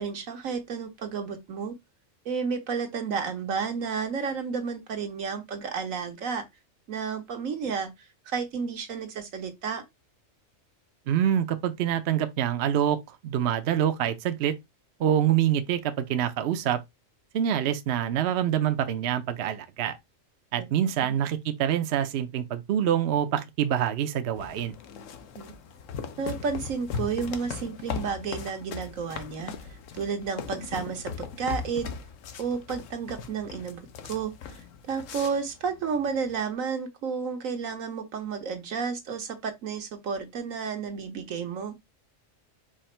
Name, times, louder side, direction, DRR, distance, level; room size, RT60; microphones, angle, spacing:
voice 1, 0.0-1.7 2.2-6.4 6.9-9.8 21.0-21.1 25.3-25.5 26.2-31.9 32.4-33.8 34.1-34.6 34.9-41.7, right 6 dB, 80° right, 1.4 m, -32 dB
voice 2, 11.1-14.6 15.0-16.8 17.3-20.0 20.5-24.7, right 10 dB, 65° right, 0.8 m, -26 dB
sound 1, 24.3-36.4, left 6 dB, 75° left, 1.1 m, -39 dB
4.9 x 2.5 x 4.3 m
omnidirectional pair, 1.4 m